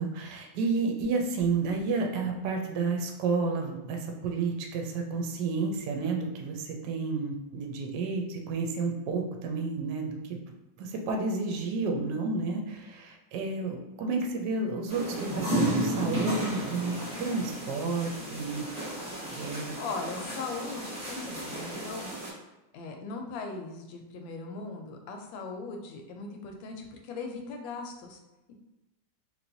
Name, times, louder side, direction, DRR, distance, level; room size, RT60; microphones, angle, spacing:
voice 1, 0.0-10.4 10.8-18.6 19.3-19.7, right 4 dB, 75° right, 2 dB, 1.1 m, -31 dB
sound 1, 14.9-22.3, equal, 5° right, 0.8 m, -33 dB
voice 2, 19.8-22.1 22.7-28.2, left 4 dB, 80° left, 3 dB, 1.3 m, -39 dB
3.2 x 3.0 x 2.6 m, 1.0 s
omnidirectional pair, 2.1 m